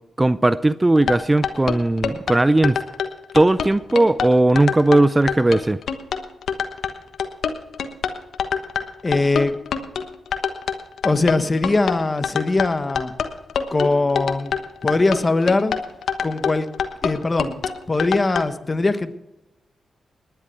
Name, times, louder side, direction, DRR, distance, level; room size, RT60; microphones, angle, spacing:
voice 1, 0.2-2.8 3.3-5.8, right 2 dB, 20° right, 15 dB, 0.5 m, -17 dB
sound 1, 1.0-18.4, left 7 dB, 80° left, 1.2 m, -25 dB
voice 2, 9.0-9.5 11.0-13.1 13.7-14.5 14.8-15.8 16.2-16.7 17.0-17.6 17.9-19.1, left 2 dB, 30° left, 10 dB, 1.2 m, -21 dB
19.5 x 10.5 x 4.6 m, 0.96 s
cardioid pair, 65°, 0 cm